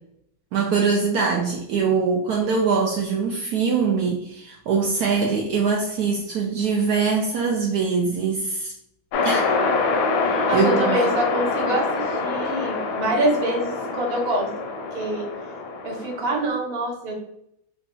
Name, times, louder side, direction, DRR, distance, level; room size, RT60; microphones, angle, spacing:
voice 1, 0.5-8.7 9.2-9.5 10.2-11.0, right 5 dB, 85° right, 0 dB, 0.8 m, -23 dB
sound 1, 9.1-16.5, left 4 dB, 75° left, 1.1 m, -25 dB
voice 2, 10.5-14.5 14.9-15.2 15.8-17.1, right 1 dB, 45° right, -1 dB, 0.7 m, -25 dB
3.2 x 2.5 x 3.6 m, 0.74 s
omnidirectional pair, 2.2 m